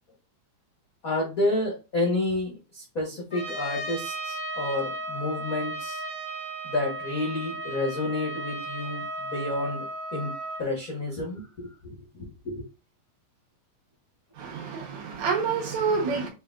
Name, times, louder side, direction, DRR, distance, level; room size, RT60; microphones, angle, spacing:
voice 1, 1.0-6.0 6.6-9.8 10.1-10.3 10.6-11.7 12.1-12.7, left 2 dB, 70° left, 0.8 m, -30 dB
Trumpet, 3.3-10.6, right 2 dB, 35° left, 0.7 m, -35 dB
voice 2, 14.4-16.3, right 5 dB, 70° right, 2.2 m, -28 dB
6.3 x 2.5 x 2.3 m
omnidirectional pair, 3.4 m